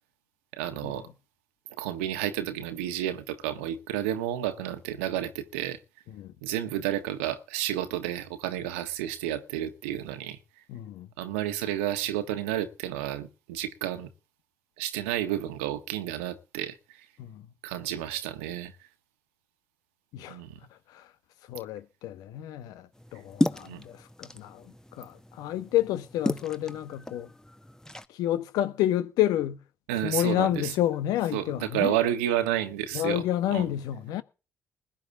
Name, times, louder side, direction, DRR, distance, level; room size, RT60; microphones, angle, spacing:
voice 1, 0.5-1.1 1.8-5.8 6.4-10.4 11.2-14.1 14.8-17.0 17.6-18.7 20.3-20.6 23.6-23.8 29.9-30.7 31.3-33.2 33.5-33.7, right 12 dB, 85° right, 1.4 m, -31 dB
voice 2, 10.7-11.1 17.2-17.5 20.1-20.4 20.7-21.1 21.5-27.3 28.1-29.6 30.0-32.0 32.9-34.2, left 13 dB, 75° left, 1.2 m, -30 dB
sound 1, 22.9-28.1, left 1 dB, 10° left, 1.4 m, -34 dB
20.5 x 10.0 x 3.7 m
hypercardioid pair, 45°, 7 cm